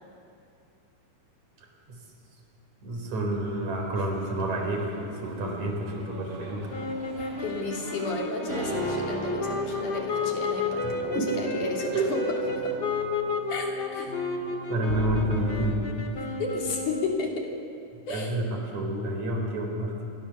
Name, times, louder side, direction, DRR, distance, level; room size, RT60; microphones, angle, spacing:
voice 1, 2.8-6.7 10.8-11.3 11.9-12.1 14.7-15.8 18.1-20.1, right 1 dB, 60° right, 2 dB, 5.3 m, -29 dB
sound 1, 3.3-8.3, right 1 dB, 15° right, 3.6 m, -46 dB
sound 2, 6.7-17.2, left 3 dB, 35° left, 2.7 m, -32 dB
voice 2, 7.1-12.8 13.5-14.1 16.4-17.5 18.1-18.4, left 3 dB, 70° left, 0 dB, 4.8 m, -33 dB
sound 3, 8.5-15.5, right 1 dB, 30° right, 8.5 m, -37 dB
28.0 x 23.5 x 7.2 m, 2.5 s
omnidirectional pair, 3.7 m